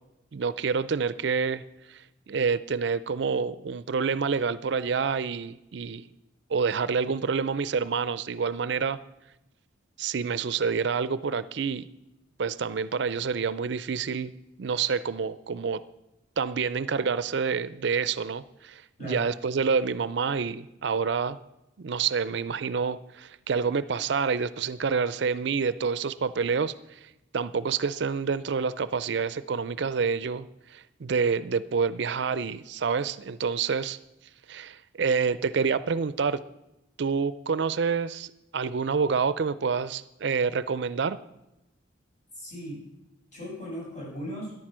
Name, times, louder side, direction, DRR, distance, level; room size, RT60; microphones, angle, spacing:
voice 1, 0.3-1.6 1.9-6.1 6.5-9.0 10.0-11.9 12.4-14.3 14.6-15.8 16.4-21.4 21.8-34.0 34.5-36.4 37.0-41.2, right 5 dB, 60° right, 16 dB, 0.4 m, -28 dB
voice 2, 42.3-42.9 43.3-44.5, equal, 40° left, -4 dB, 6.7 m, -37 dB
13.0 x 11.0 x 6.1 m, 0.93 s
head